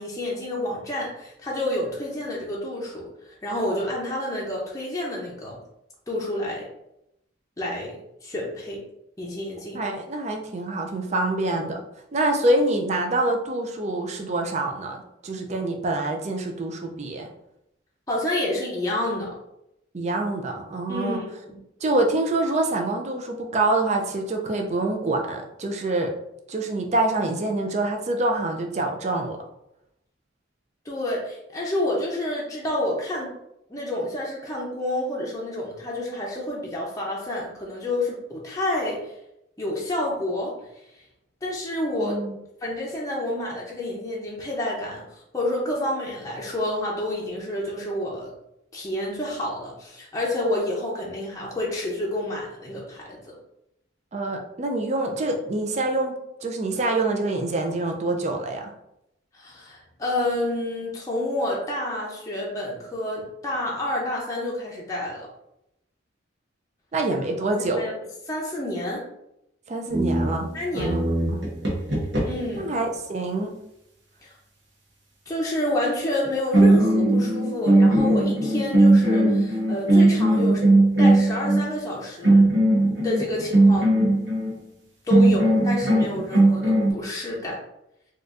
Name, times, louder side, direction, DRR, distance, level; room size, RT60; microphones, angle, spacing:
voice 1, 0.0-3.1 3.4-5.6 6.1-6.7 7.6-8.0 8.2-8.8 9.2-9.8 18.1-19.3 20.9-21.6 30.9-33.3 33.7-39.0 39.6-40.6 41.4-42.2 42.6-45.0 45.3-48.3 48.7-53.4 59.3-65.3 67.6-67.9 68.3-69.0 70.5-71.0 72.2-72.7 74.2-74.3 75.3-80.6 81.0-82.5 83.0-83.9 85.0-87.6, left 1 dB, 15° left, -4 dB, 0.6 m, -29 dB
voice 2, 9.7-11.8 12.1-17.3 19.9-21.2 21.8-26.1 26.5-29.4 42.0-42.4 54.1-56.1 56.4-58.7 66.9-67.9 69.7-71.4 72.6-73.6, right 2 dB, 35° right, 3 dB, 0.5 m, -26 dB
sound 1, 69.9-72.6 76.1-76.3 76.5-81.7 82.2-84.5 85.1-86.9, right 2 dB, 65° right, 1.0 m, -19 dB
4.2 x 2.4 x 2.5 m, 0.81 s
head